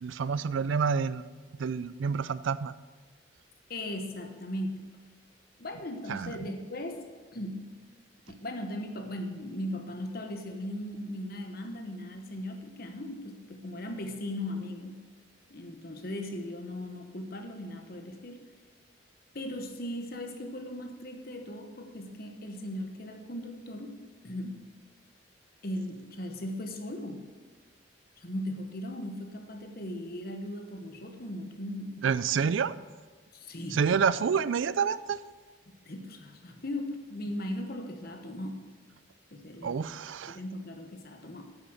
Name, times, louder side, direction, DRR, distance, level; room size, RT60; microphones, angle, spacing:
voice 1, 0.0-1.2 1.6-2.7 6.1-6.3 32.0-32.7 33.7-35.2 39.6-40.4, right 6 dB, 85° right, 17 dB, 0.4 m, -28 dB
voice 2, 3.7-4.8 5.6-7.0 7.3-7.7 8.3-15.0 15.5-18.4 19.3-24.6 25.6-27.3 28.2-32.1 33.3-33.8 35.8-38.6 39.3-39.8 40.3-41.5, left 1 dB, 50° left, 5 dB, 1.2 m, -38 dB
9.4 x 7.8 x 6.4 m, 1.4 s
head